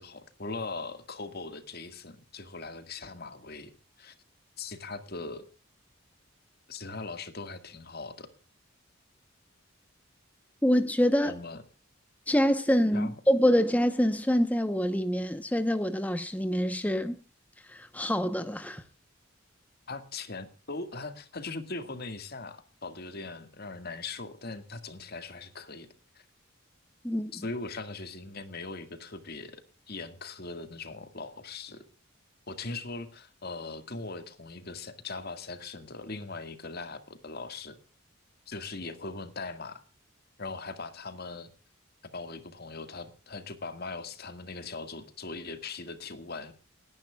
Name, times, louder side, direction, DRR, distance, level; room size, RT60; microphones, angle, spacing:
voice 1, 0.0-3.7 4.0-4.1 4.6-5.4 6.7-8.3 11.2-11.6 12.9-13.2 19.9-25.9 26.1-26.2 27.3-29.6 29.9-31.8 32.5-37.8 38.5-39.8 40.4-41.5 42.1-46.5, left 3 dB, 50° left, 1.8 m, -40 dB
voice 2, 10.6-11.3 12.3-17.2 17.7-18.8 27.0-27.3, equal, 10° left, 0.8 m, -26 dB
29.0 x 10.5 x 2.3 m
head